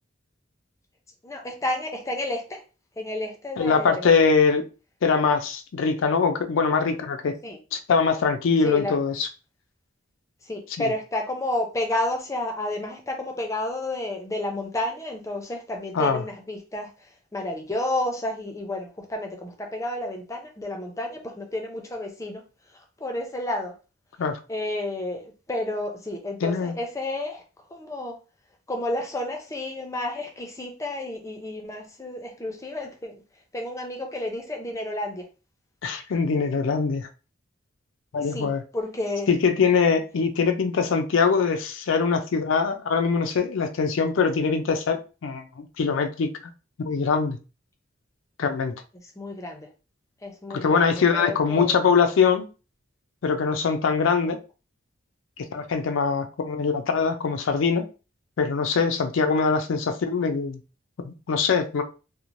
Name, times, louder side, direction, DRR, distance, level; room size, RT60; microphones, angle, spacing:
voice 1, 1.2-2.6 3.0-4.3 7.4-7.6 8.6-9.0 10.4-22.4 23.0-23.7 24.5-27.4 27.7-28.2 28.7-33.2 33.5-35.3 38.3-39.3 49.2-49.7 50.2-51.8, left 1 dB, 15° left, 0.5 m, -31 dB
voice 2, 3.6-4.6 5.0-7.4 7.7-9.3 15.9-16.2 24.2-24.4 26.4-26.8 35.8-37.1 38.1-38.6 39.3-46.3 46.8-47.4 48.4-48.7 50.5-52.5 53.2-54.4 55.4-57.9 58.4-60.6 61.0-61.8, left 5 dB, 80° left, 0.4 m, -23 dB
3.0 x 2.0 x 2.5 m
head